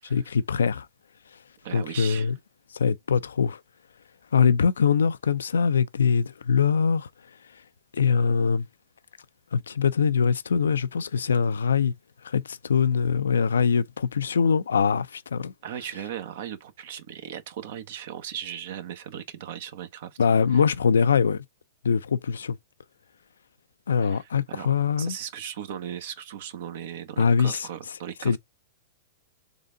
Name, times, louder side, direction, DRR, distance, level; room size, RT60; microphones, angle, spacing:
voice 1, 0.0-0.9 1.7-2.4 2.7-3.6 4.3-7.1 7.9-8.7 9.5-11.9 12.2-15.5 20.2-21.4 21.8-22.6 23.9-25.2 27.2-27.7 28.2-28.4, left 6 dB, 85° left, 0.4 m, -23 dB
voice 2, 1.6-2.3 15.6-20.2 20.5-20.6 24.0-28.4, right 9 dB, 65° right, 0.9 m, -37 dB
3.8 x 3.4 x 3.7 m
hypercardioid pair, 120°, 0 cm